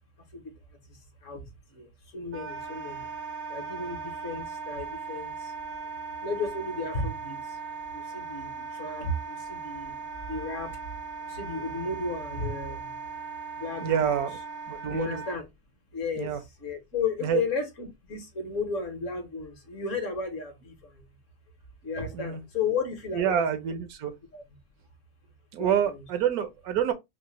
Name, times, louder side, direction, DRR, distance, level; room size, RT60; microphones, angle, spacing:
voice 1, 1.7-3.1 3.5-5.5 6.2-7.4 7.9-10.0 10.3-10.8 11.3-12.9 13.6-14.2 14.9-15.5 15.9-16.3 16.6-21.0 21.8-23.4 24.3-24.4 25.6-26.0, left 4 dB, 60° left, 1.2 m, -33 dB
Wind instrument woodwind instrument, 2.3-15.4, right 5 dB, 60° right, 0.6 m, -38 dB
voice 2, 13.8-14.4 14.7-15.2 16.2-16.4 17.2-17.4 22.1-22.4 23.1-24.1 25.5-26.9, right 9 dB, 75° right, 1.1 m, -27 dB
4.8 x 2.1 x 2.9 m
omnidirectional pair, 1.6 m